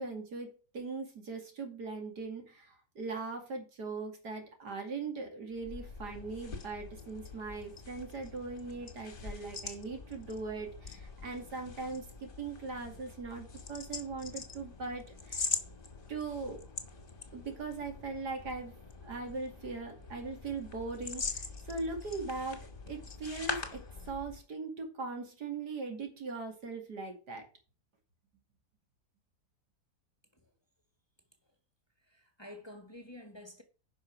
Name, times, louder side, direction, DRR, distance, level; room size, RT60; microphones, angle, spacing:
voice 1, 0.0-15.5 16.1-16.7 17.3-18.8 19.0-22.6 22.9-27.4, right 4 dB, 80° right, 2.9 m, -40 dB
sound 1, 5.5-24.4, left 4 dB, 35° left, 1.6 m, -43 dB
voice 2, 32.0-33.6, left 1 dB, 15° left, 1.6 m, -50 dB
10.5 x 5.6 x 4.6 m
omnidirectional pair, 1.7 m